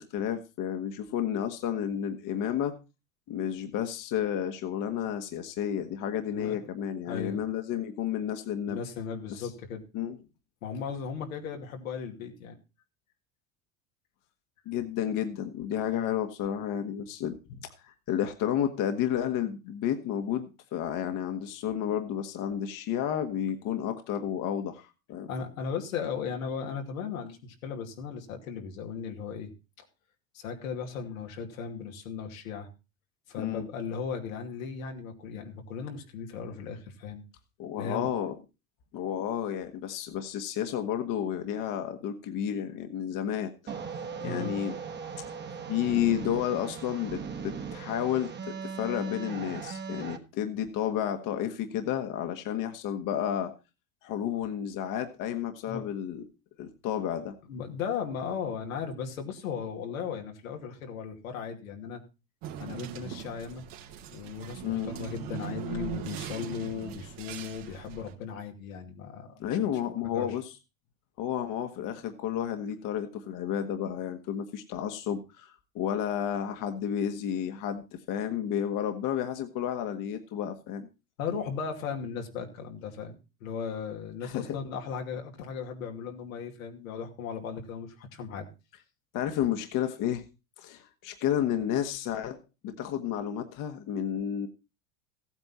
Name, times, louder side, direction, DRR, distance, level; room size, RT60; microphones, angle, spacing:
voice 1, 0.0-2.8 3.3-8.8 9.4-9.5 9.9-10.2 14.6-25.3 33.4-33.7 37.6-38.4 38.9-43.5 44.2-44.7 45.2-45.3 45.7-53.5 54.0-56.2 56.6-57.3 64.6-64.9 69.4-70.5 71.2-80.9 84.2-84.5 89.1-90.2 90.6-92.4 92.6-94.5, left 9 dB, 50° left, 7 dB, 1.6 m, -31 dB
voice 2, 6.3-6.6 7.1-7.4 8.7-9.8 10.6-12.5 25.3-29.5 30.3-32.7 33.3-37.2 37.8-38.1 44.2-44.6 55.7-55.8 57.5-62.0 62.6-63.6 64.1-69.6 70.0-70.4 81.2-88.5, left 6 dB, 85° left, 2 dB, 2.6 m, -36 dB
sound 1, 43.7-50.2, right 6 dB, 25° right, 1.6 m, -38 dB
sound 2, 62.4-68.1, right 9 dB, 60° right, 2.0 m, -40 dB
14.5 x 9.0 x 4.3 m, 0.29 s
hypercardioid pair, 100°, 40 cm